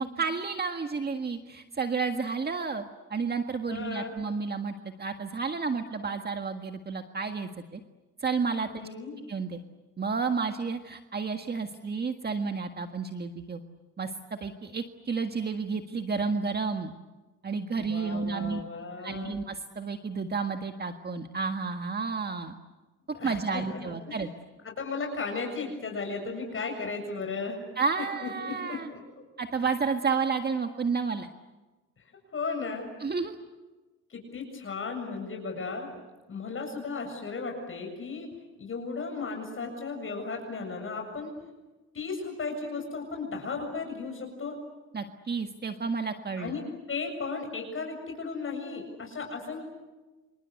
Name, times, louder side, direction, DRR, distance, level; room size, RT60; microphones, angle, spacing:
voice 1, 0.0-2.8 3.1-7.8 8.2-8.7 9.3-9.6 10.0-13.6 14.0-16.9 17.4-18.6 19.0-22.5 23.1-24.3 27.8-28.9 29.4-31.3 33.0-33.4 44.9-46.6, right 5 dB, 35° right, 6 dB, 1.7 m, -31 dB
voice 2, 3.7-4.1 8.7-9.2 17.8-19.4 23.1-24.2 24.6-27.6 28.2-29.0 32.3-32.9 34.1-35.9 36.3-38.3 38.6-41.3 41.9-44.6 46.4-46.6 46.9-49.6, left 4 dB, 45° left, 3 dB, 7.4 m, -35 dB
27.5 x 26.5 x 8.3 m, 1.2 s
cardioid pair, 90°, 30 cm